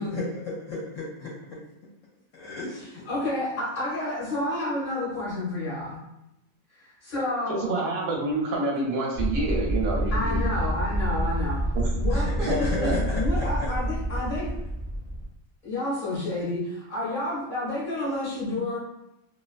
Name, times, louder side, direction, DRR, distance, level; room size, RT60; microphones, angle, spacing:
voice 1, 0.0-1.6 2.3-2.7 12.1-13.7, left 3 dB, 70° left, -5 dB, 0.9 m, -33 dB
voice 2, 3.1-6.0 6.8-7.6 10.1-11.6 11.9-14.5 15.6-18.8, left 1 dB, 50° left, -9 dB, 0.8 m, -30 dB
voice 3, 7.5-10.4 11.7-11.9 12.5-12.9, right 2 dB, 60° right, -2 dB, 0.6 m, -28 dB
sound 1, 9.2-15.2, right 1 dB, 25° left, 0.8 m, -27 dB
2.4 x 2.2 x 2.4 m, 0.86 s
omnidirectional pair, 1.5 m